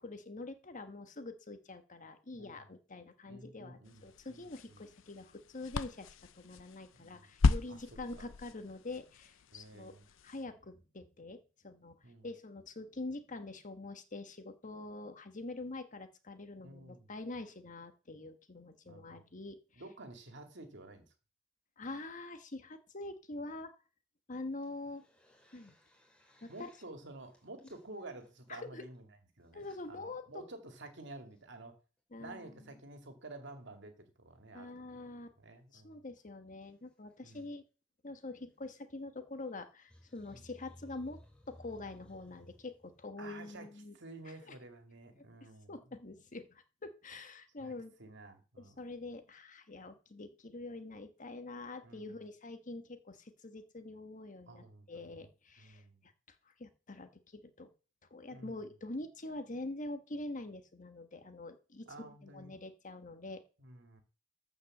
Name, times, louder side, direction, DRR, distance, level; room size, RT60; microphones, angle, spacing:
voice 1, 0.0-9.9 10.2-12.0 12.2-19.8 21.8-23.7 24.3-25.0 25.5-25.7 26.4-26.7 28.5-28.8 29.5-30.3 32.1-32.8 34.5-35.3 35.7-37.6 38.0-41.2 41.5-43.9 44.5-44.6 45.7-47.9 48.6-56.1 56.4-57.7 58.1-63.4, left 2 dB, 40° left, 1.4 m, -45 dB
voice 2, 2.3-2.7 3.3-4.8 7.0-7.3 7.7-7.8 8.1-8.3 9.5-10.1 12.0-12.3 16.6-17.1 18.9-19.2 19.7-21.1 26.5-29.1 29.4-31.8 32.2-35.0 35.4-36.0 37.2-37.4 40.3-40.4 43.2-43.7 43.9-45.9 47.6-47.7 48.0-48.8 51.8-52.2 54.5-55.3 55.6-56.0 58.3-58.6 61.9-62.6 63.6-64.0, right 2 dB, 65° right, 2.4 m, -51 dB
sound 1, 3.8-10.4, left 4 dB, 80° left, 0.6 m, -36 dB
sound 2, 24.5-26.9 27.2-29.0 29.5-29.8 30.4-30.5 30.7-31.4 33.5-33.7 35.5-35.6 35.9-36.0 36.2-36.3 36.6-37.5 38.5-38.8 39.7-43.1, equal, 5° left, 3.4 m, -61 dB
13.0 x 5.4 x 7.3 m
head